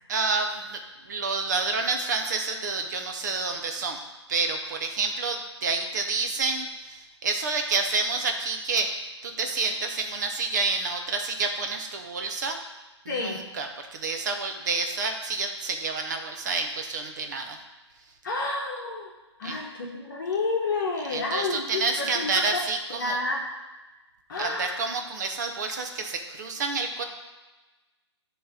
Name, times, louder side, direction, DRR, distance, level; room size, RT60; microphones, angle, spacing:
voice 1, 0.1-0.8 1.1-4.0 4.3-12.6 13.0-17.6 19.4-19.6 21.1-23.2 24.4-27.0, right 4 dB, 40° right, 5 dB, 1.0 m, -29 dB
voice 2, 13.1-13.4 18.2-19.1 19.4-22.6 22.9-23.4 24.3-24.9, left 3 dB, 45° left, -1 dB, 1.3 m, -30 dB
9.4 x 3.4 x 5.9 m, 1.1 s
hypercardioid pair, 160°, 15 cm